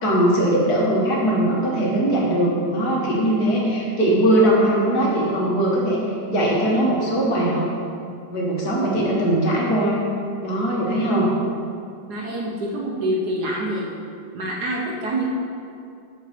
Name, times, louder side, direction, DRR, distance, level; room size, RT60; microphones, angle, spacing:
voice 1, 0.0-6.0 6.3-7.7 8.1-10.1 10.4-11.3, right 1 dB, 50° left, -4 dB, 1.9 m, -20 dB
voice 2, 12.1-13.9 14.3-15.3, right 1 dB, 60° right, -2 dB, 1.3 m, -26 dB
6.6 x 5.5 x 6.6 m, 2.4 s
omnidirectional pair, 2.3 m